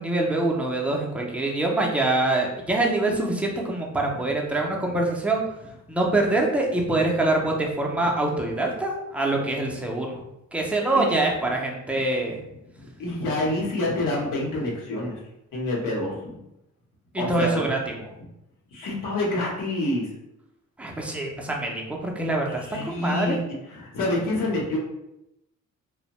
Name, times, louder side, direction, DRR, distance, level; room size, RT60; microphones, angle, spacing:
voice 1, 0.0-5.4 5.9-10.2 10.5-12.4 17.1-18.1 20.8-23.4, right 2 dB, 5° right, -1 dB, 0.3 m, -25 dB
voice 2, 13.0-15.2 15.5-16.3 17.2-17.7 18.7-20.1 22.6-23.4 23.7-24.8, left 2 dB, 80° left, -3 dB, 0.8 m, -27 dB
2.5 x 2.0 x 2.9 m, 0.88 s
cardioid pair, 130°, 31 cm